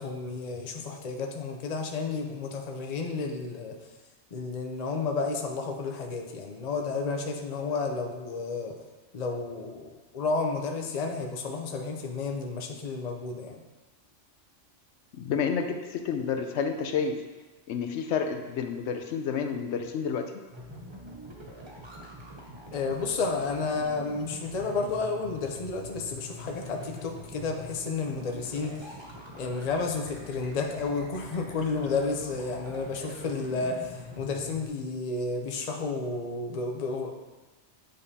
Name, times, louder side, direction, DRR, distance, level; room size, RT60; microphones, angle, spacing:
voice 1, 0.0-3.8 4.3-8.8 9.1-13.6 22.7-28.9 29.4-37.1, left 4 dB, 40° left, 2 dB, 0.7 m, -31 dB
voice 2, 15.1-17.2 17.7-20.2, left 6 dB, 75° left, 6 dB, 0.9 m, -30 dB
sound 1, 20.5-34.7, equal, 25° right, 0.9 m, -44 dB
9.0 x 5.1 x 2.8 m, 1.2 s
omnidirectional pair, 1.2 m